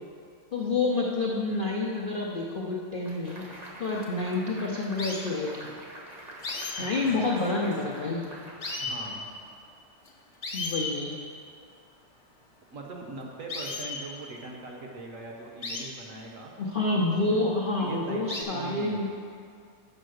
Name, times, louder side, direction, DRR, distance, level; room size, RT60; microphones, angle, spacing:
voice 1, 0.5-3.4 3.8-5.7 6.8-8.3 10.5-11.2 16.6-19.1, left 2 dB, 75° left, -3 dB, 0.4 m, -28 dB
sound 1, 3.1-9.5, right 1 dB, 30° right, 0.8 m, -45 dB
sound 2, 4.0-4.3 5.0-5.2 6.4-8.0 8.3-8.4 8.6-9.0 10.0-10.1 10.4-11.0 13.5-14.0 15.6-15.9 17.0-17.1 18.3-18.4, left 3 dB, 35° left, 0.7 m, -35 dB
voice 2, 6.9-7.3 8.8-9.2 12.7-16.5 17.0-17.4 17.8-19.2, right 3 dB, 55° right, 0 dB, 1.0 m, -42 dB
7.6 x 5.5 x 6.3 m, 2.3 s
omnidirectional pair, 2.0 m